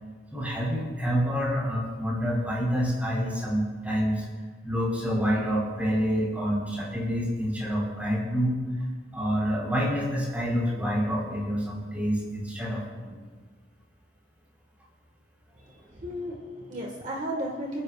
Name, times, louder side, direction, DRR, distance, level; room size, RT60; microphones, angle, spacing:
voice 1, 0.3-4.2 4.6-8.6 9.1-13.1, equal, 10° right, -5 dB, 4.3 m, -27 dB
voice 2, 15.6-17.8, equal, 45° right, -1 dB, 1.7 m, -34 dB
29.0 x 9.9 x 2.5 m, 1.4 s
head